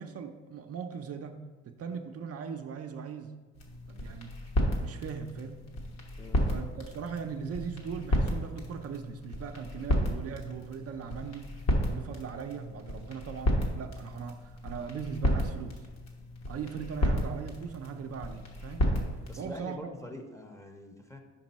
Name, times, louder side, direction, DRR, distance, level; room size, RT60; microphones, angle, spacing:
voice 1, 0.0-1.4 1.6-3.4 3.9-4.4 4.8-5.8 6.5-11.5 11.9-15.8 16.5-18.9 19.4-19.9, right 6 dB, 50° right, 5 dB, 0.5 m, -39 dB
sound 1, 3.5-19.4, equal, 60° left, 1.4 m, -32 dB
voice 2, 6.2-6.5 19.3-21.2, equal, 10° left, 4 dB, 0.7 m, -44 dB
5.3 x 5.2 x 4.0 m, 1.3 s
cardioid pair, 90°, 30 cm